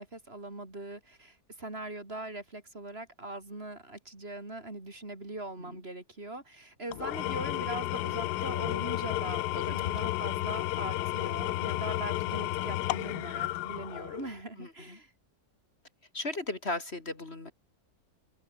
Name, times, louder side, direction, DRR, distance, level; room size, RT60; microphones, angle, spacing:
voice 1, 0.0-15.1, right 2 dB, 40° right, 4.0 m, -41 dB
Engine / Tools, 6.9-14.4, left 16 dB, 85° left, 1.1 m, -32 dB
voice 2, 14.6-15.0 16.1-17.5, left 2 dB, 40° left, 3.0 m, -36 dB
omnidirectional pair, 1.7 m